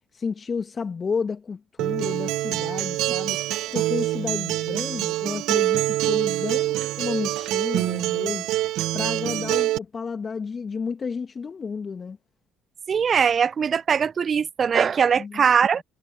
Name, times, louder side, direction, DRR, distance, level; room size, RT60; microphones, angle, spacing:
voice 1, 0.1-3.4 3.7-8.5 8.9-12.2 15.2-15.4, left 5 dB, 35° left, 1.7 m, -31 dB
Acoustic guitar, 1.8-9.8, right 16 dB, 65° right, 0.9 m, -25 dB
voice 2, 12.9-15.8, right 7 dB, 45° right, 0.5 m, -21 dB
hypercardioid pair, 50°, 0 cm